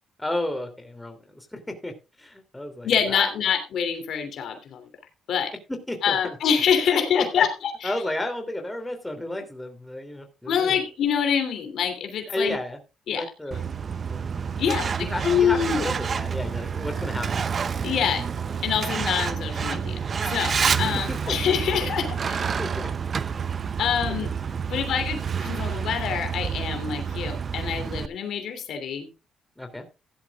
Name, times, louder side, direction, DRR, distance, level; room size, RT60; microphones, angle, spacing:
voice 1, 0.2-3.3 5.9-6.2 6.9-7.4 7.8-10.8 12.3-12.8 13.1-13.6 14.1-14.2 14.7-17.5 20.7-21.6 22.6-22.9 24.1-24.3 24.6-24.7 29.6-29.8, left 1 dB, 10° left, 5 dB, 2.9 m, -32 dB
voice 2, 2.8-4.9 5.3-5.5 6.0-7.9 10.5-12.6 13.1-13.3 14.6-15.9 17.8-18.2 18.6-20.0 20.3-22.6 23.8-24.3 24.7-29.1, left 8 dB, 70° left, 6 dB, 2.9 m, -25 dB
Truck, 13.5-28.1, right 6 dB, 45° right, 0.6 m, -28 dB
16.0 x 11.5 x 2.4 m, 0.29 s
cardioid pair, 90°, 0 cm